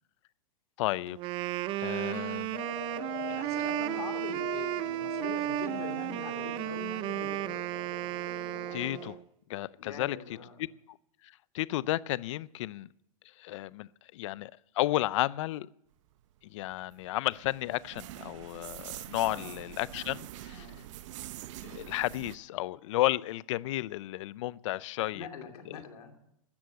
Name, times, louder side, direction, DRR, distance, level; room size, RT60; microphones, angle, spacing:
voice 1, 0.8-1.2 1.8-2.6 8.7-9.2 9.5-10.2 10.6-11.0 11.5-12.9 13.4-15.7 16.5-20.7 21.6-25.3 25.7-25.8, left 16 dB, 55° left, 0.4 m, -33 dB
Wind instrument woodwind instrument, 1.1-9.2, right 15 dB, 25° right, 0.4 m, -34 dB
sound 1, 2.5-9.2, left 13 dB, 30° left, 0.8 m, -44 dB
voice 2, 3.3-7.5 9.8-10.6 19.2-19.6 19.9-20.2 20.5-20.8 25.0-26.1, left 6 dB, 80° left, 2.8 m, -44 dB
sound 2, 16.4-22.4, right 14 dB, 55° right, 0.7 m, -45 dB
13.0 x 7.6 x 8.2 m
hypercardioid pair, 140°, 19 cm